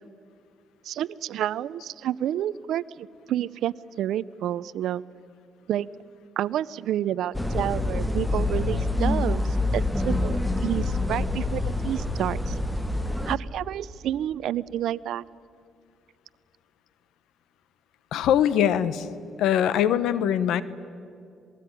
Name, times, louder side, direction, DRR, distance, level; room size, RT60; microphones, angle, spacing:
voice 1, 0.8-5.0 5.7-5.9 6.4-12.6 13.3-15.2, right 11 dB, 80° right, 19 dB, 0.6 m, -29 dB
sound 1, 7.3-13.4, left 2 dB, 5° left, 1.4 m, -26 dB
voice 2, 18.1-19.1 19.4-20.6, left 10 dB, 85° left, 16 dB, 1.1 m, -22 dB
27.0 x 19.5 x 9.9 m, 2.4 s
cardioid pair, 90°, 0 cm